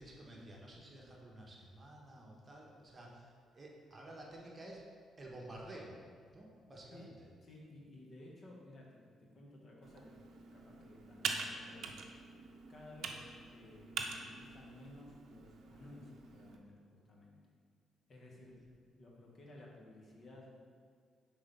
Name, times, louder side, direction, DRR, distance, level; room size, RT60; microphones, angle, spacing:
voice 1, 0.0-4.9 5.2-6.0 6.3-7.3, right 1 dB, 30° right, -2 dB, 1.1 m, -52 dB
voice 2, 7.4-12.0 12.7-17.5 18.1-20.6, left 1 dB, 50° left, -2 dB, 1.3 m, -56 dB
Computer keyboard, 9.8-16.6, right 5 dB, 70° right, 0.5 m, -45 dB
5.2 x 3.8 x 5.3 m, 2.1 s
cardioid pair, 90°, 0 cm